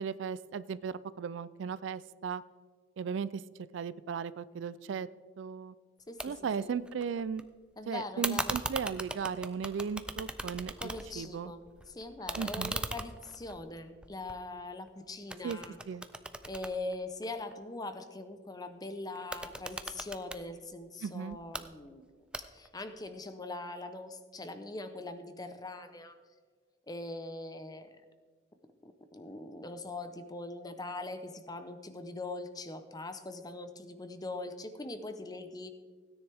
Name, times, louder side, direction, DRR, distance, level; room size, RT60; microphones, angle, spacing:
voice 1, 0.0-2.4 3.0-3.4 3.7-5.1 5.4-5.7 6.2-7.4 7.9-11.5 12.4-12.7 15.4-15.6 15.9-16.1 21.0-21.4, right 6 dB, 75° right, 17 dB, 0.4 m, -36 dB
voice 2, 6.1-6.8 7.8-8.6 10.8-15.8 16.4-22.0 22.4-26.2 26.9-28.0 28.8-35.7, left 2 dB, 20° left, 9 dB, 0.7 m, -42 dB
sound 1, 6.2-6.3 6.6-7.4 8.2-11.3 11.6-14.9 15.3-17.5 19.2-20.4 21.3-21.6 22.3-22.8, right 2 dB, 5° right, 0.4 m, -39 dB
16.5 x 9.8 x 3.5 m, 1.5 s
head